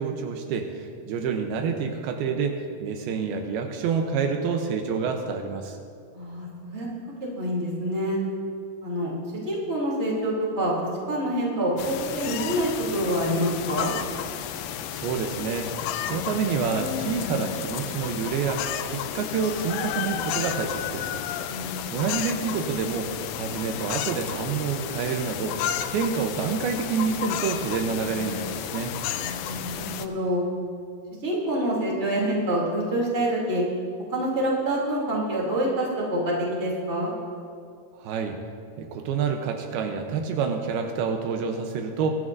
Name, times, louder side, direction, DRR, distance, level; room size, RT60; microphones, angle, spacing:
voice 1, 0.0-5.8 14.9-15.7 16.1-21.2 21.9-25.6 25.9-28.9 38.0-38.4 38.8-42.1, right 6 dB, 80° right, 4 dB, 2.7 m, -28 dB
voice 2, 6.1-6.9 7.2-8.2 8.8-10.7 11.1-13.9 21.5-21.9 29.2-30.4 31.2-33.6 34.1-37.1, right 1 dB, 20° right, -4 dB, 2.6 m, -27 dB
sound 1, 11.8-30.1, left 10 dB, 80° left, 2.3 m, -32 dB
23.0 x 12.5 x 2.6 m, 2.3 s
omnidirectional pair, 4.5 m